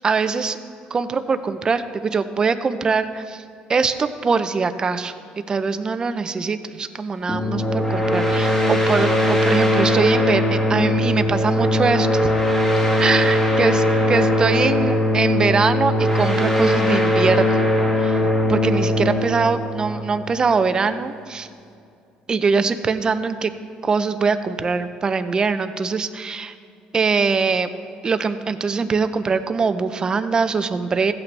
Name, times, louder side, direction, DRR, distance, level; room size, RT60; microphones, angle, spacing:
voice 1, 0.0-0.6 0.9-3.4 3.7-5.1 5.5-12.3 13.0-17.6 18.0-21.5 22.3-23.5 23.8-26.5 26.9-27.7 28.0-31.1, right 5 dB, 30° right, 10 dB, 0.6 m, -22 dB
sound 1, 7.3-20.6, left 1 dB, 15° left, 1.5 m, -20 dB
15.5 x 8.6 x 3.3 m, 2.4 s
cardioid pair, 115°, 3 cm